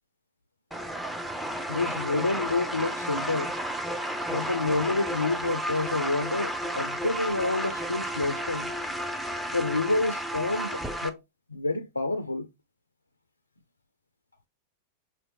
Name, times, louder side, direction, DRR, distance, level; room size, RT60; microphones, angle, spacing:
sound 1, 0.7-11.1, right 1 dB, 5° right, 0.6 m, -32 dB
voice 1, 1.7-3.5 4.3-8.7 9.5-11.2 11.5-12.5, left 3 dB, 85° left, 0.4 m, -28 dB
5.6 x 2.9 x 2.8 m
figure-of-eight pair, 90°, 0 cm